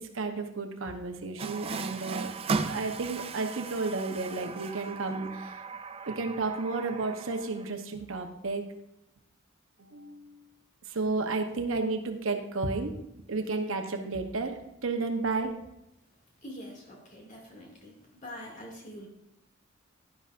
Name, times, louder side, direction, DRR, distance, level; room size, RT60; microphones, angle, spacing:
voice 1, 0.0-2.3 2.7-5.6 6.1-8.7 9.8-10.4 10.8-13.0 13.3-15.6, right 3 dB, 70° right, 4 dB, 1.0 m, -32 dB
Water tap faucet, 1.4-7.7, right 4 dB, 30° right, 0.4 m, -37 dB
voice 2, 16.4-19.1, equal, 35° left, -2 dB, 2.4 m, -45 dB
11.0 x 11.0 x 2.6 m, 0.83 s
head